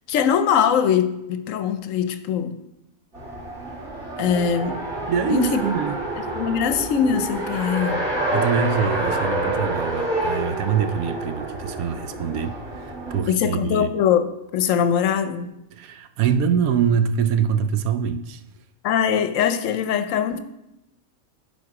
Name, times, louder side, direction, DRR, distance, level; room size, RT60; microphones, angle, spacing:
voice 1, 0.1-2.6 4.2-4.8 5.3-5.6 6.3-8.0 13.3-15.5 18.8-20.4, left 8 dB, 70° left, 1.0 m, -22 dB
Race car auto racing, 3.1-13.2, right 1 dB, 50° right, 3.0 m, -28 dB
voice 2, 5.1-6.0 8.3-13.9 15.7-18.4, right 7 dB, 80° right, 1.0 m, -24 dB
10.5 x 4.3 x 4.8 m
omnidirectional pair, 1.5 m